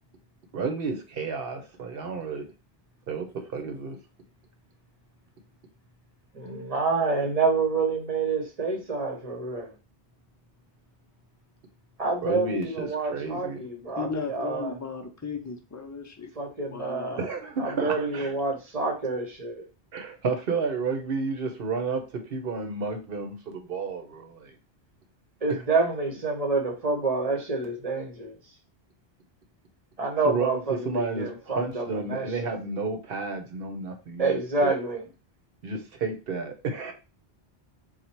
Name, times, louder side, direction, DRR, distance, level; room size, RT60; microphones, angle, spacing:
voice 1, 0.5-2.4 3.1-4.0 12.2-13.6 17.2-18.3 19.9-24.5 25.5-25.6 30.2-34.7 35.6-36.9, right 4 dB, 60° right, 5 dB, 1.0 m, -31 dB
voice 2, 6.3-9.7 12.0-14.8 16.4-17.3 17.6-19.7 25.4-28.4 30.0-32.6 34.2-35.0, right 3 dB, 35° right, 2 dB, 1.0 m, -28 dB
voice 3, 14.0-16.3 16.7-17.2, left 5 dB, 20° left, 4 dB, 0.5 m, -35 dB
4.1 x 2.4 x 4.4 m, 0.31 s
omnidirectional pair, 1.1 m